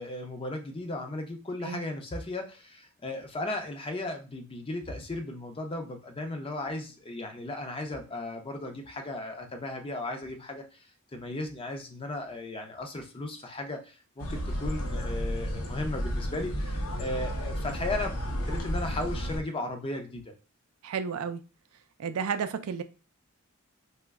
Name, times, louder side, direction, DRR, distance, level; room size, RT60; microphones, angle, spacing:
voice 1, 0.0-20.3, left 2 dB, 25° left, 5 dB, 0.5 m, -36 dB
sound 1, 14.2-19.4, equal, 85° left, 0.7 m, -32 dB
voice 2, 20.8-21.4 22.0-22.8, right 6 dB, 75° right, 10 dB, 0.4 m, -32 dB
2.9 x 2.1 x 3.5 m, 0.32 s
head